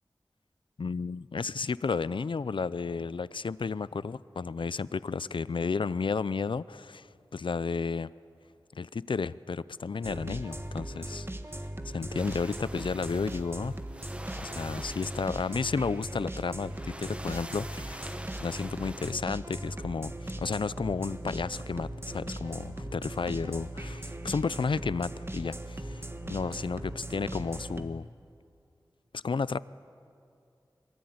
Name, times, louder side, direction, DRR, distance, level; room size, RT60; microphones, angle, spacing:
voice 1, 0.8-8.1 8.7-11.3 11.9-13.8 14.4-28.1 29.1-29.6, left 5 dB, 80° left, 18 dB, 0.5 m, -32 dB
sound 1, 10.0-27.8, right 1 dB, 30° right, 1.6 m, -39 dB
sound 2, 12.2-19.1, right 1 dB, 15° right, 1.2 m, -46 dB
24.0 x 23.0 x 9.6 m, 2.5 s
wide cardioid pair, 65°, 8 cm